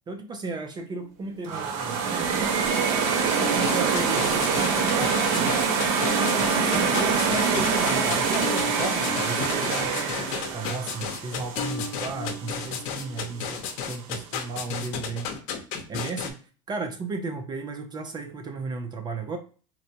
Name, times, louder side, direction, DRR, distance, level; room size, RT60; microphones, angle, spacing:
voice 1, 0.1-2.6 3.2-5.5 6.5-15.3 15.9-16.4 16.7-19.4, right 4 dB, 25° right, 6 dB, 0.5 m, -34 dB
sound 1, 0.8-1.7 3.3-11.2 11.6-13.7, left 3 dB, 35° left, 0.8 m, -39 dB
sound 2, 1.4-12.5, right 5 dB, 70° right, 0.8 m, -25 dB
sound 3, 3.5-16.3, left 7 dB, 70° left, 0.7 m, -33 dB
4.0 x 2.1 x 2.8 m, 0.39 s
supercardioid pair, 120°, 17 cm